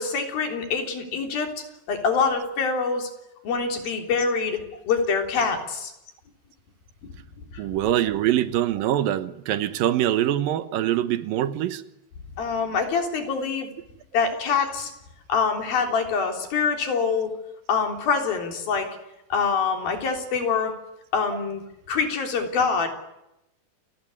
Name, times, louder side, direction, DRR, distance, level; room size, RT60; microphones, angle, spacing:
voice 1, 0.0-3.1 3.4-5.9 7.5-7.6 12.4-13.7 14.1-14.9 15.3-17.3 17.7-18.9 19.3-20.8 21.1-21.6 21.9-22.9, left 5 dB, 85° left, 5.4 m, -25 dB
voice 2, 7.6-11.8, right 12 dB, 80° right, 2.8 m, -24 dB
29.0 x 19.5 x 9.8 m
omnidirectional pair, 4.1 m